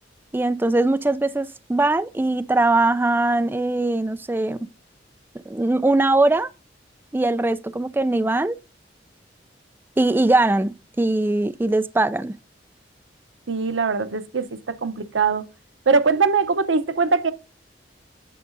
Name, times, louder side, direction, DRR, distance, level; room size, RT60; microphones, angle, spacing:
voice 1, 0.3-4.7 5.5-6.5 7.1-8.6 10.0-12.4, right 2 dB, 10° right, 0.3 m, -21 dB
voice 2, 13.5-14.5 14.8-15.4 15.9-17.3, right 4 dB, 90° right, 0.8 m, -21 dB
8.5 x 6.5 x 2.6 m
head